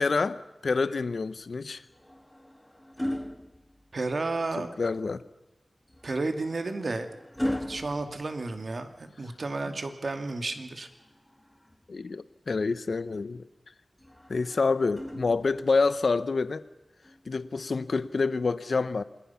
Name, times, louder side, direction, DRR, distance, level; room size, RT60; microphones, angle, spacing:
voice 1, 0.0-1.8 4.6-5.2 11.9-13.4 14.3-16.6 17.3-19.0, left 4 dB, 70° left, 15 dB, 0.9 m, -27 dB
sound 1, 1.8-4.3 5.9-9.1 10.8-12.0 14.0-15.8 17.0-17.3, left 1 dB, 10° left, 1.6 m, -38 dB
voice 2, 3.9-4.7 6.0-7.1 7.7-10.9, right 3 dB, 60° right, 7 dB, 2.4 m, -32 dB
27.5 x 21.0 x 5.8 m, 1.0 s
wide cardioid pair, 75°, 0 cm